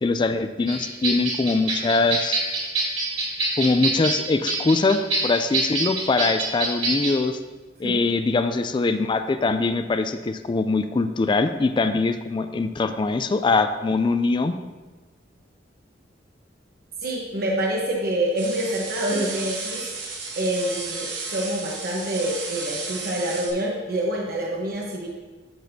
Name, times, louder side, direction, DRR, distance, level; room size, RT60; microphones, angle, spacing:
voice 1, 0.0-2.4 3.6-7.4 7.8-14.5, left 3 dB, 25° left, 9 dB, 0.3 m, -22 dB
sound 1, 0.7-7.1, right 3 dB, 35° right, 2.3 m, -26 dB
voice 2, 17.0-19.8 20.3-25.1, right 1 dB, 55° right, -2 dB, 1.1 m, -26 dB
sound 2, 18.4-23.5, right 4 dB, 80° right, 1.8 m, -33 dB
13.5 x 6.0 x 2.7 m, 1.4 s
head